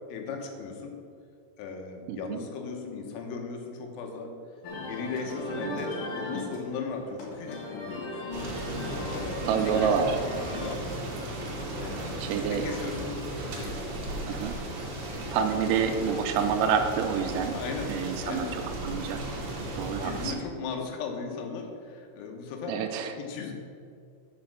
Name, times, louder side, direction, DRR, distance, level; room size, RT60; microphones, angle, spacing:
voice 1, 0.1-1.0 1.6-4.3 4.8-8.3 9.1-10.1 10.4-10.9 11.8-12.2 12.5-13.2 13.5-13.8 17.5-17.9 18.2-18.6 19.8-22.8 23.2-23.5, left 5 dB, 85° left, 3 dB, 3.7 m, -37 dB
voice 2, 2.1-2.4 5.7-5.8 9.5-10.2 12.2-12.7 14.3-14.6 15.1-17.6 17.9-18.5 18.8-19.2 19.8-20.4 22.7-23.1, right 7 dB, 80° right, 6 dB, 3.1 m, -28 dB
sound 1, 4.6-14.0, left 2 dB, 60° left, 2.2 m, -39 dB
sound 2, 8.3-20.3, right 1 dB, 65° right, 2.0 m, -35 dB
8.5 x 5.1 x 7.3 m, 2.4 s
omnidirectional pair, 5.9 m